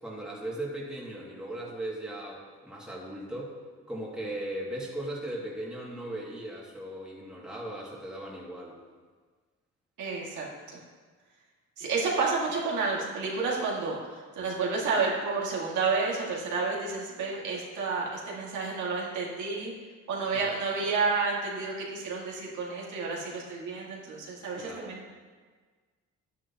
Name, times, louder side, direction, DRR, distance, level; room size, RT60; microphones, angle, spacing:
voice 1, 0.0-3.5 3.9-8.8 20.3-20.5 24.6-25.0, right 1 dB, 5° right, -5 dB, 2.3 m, -38 dB
voice 2, 10.0-10.8 11.8-19.7 20.1-25.0, right 4 dB, 75° right, -4 dB, 2.2 m, -30 dB
9.7 x 9.5 x 3.0 m, 1.5 s
cardioid pair, 90°, 30 cm